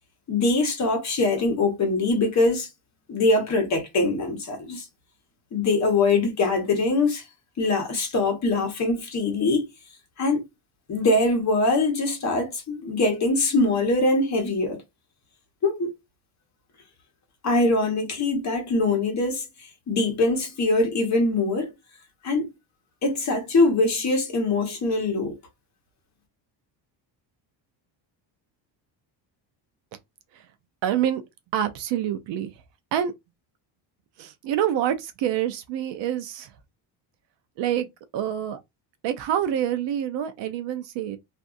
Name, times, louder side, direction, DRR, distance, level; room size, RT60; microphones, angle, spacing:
voice 1, 0.3-2.7 3.1-4.8 5.5-7.2 7.6-9.7 10.2-10.4 10.9-14.8 15.6-15.9 17.4-19.4 19.9-21.7 22.2-22.5 23.0-25.4, left 2 dB, 35° left, 1.1 m, -23 dB
voice 2, 30.8-31.2 31.5-32.5 32.9-33.1 34.2-36.5 37.6-37.9 38.1-38.6 39.0-41.2, right 10 dB, 65° right, 0.6 m, -26 dB
2.6 x 2.5 x 2.3 m
cardioid pair, 145°, 47 cm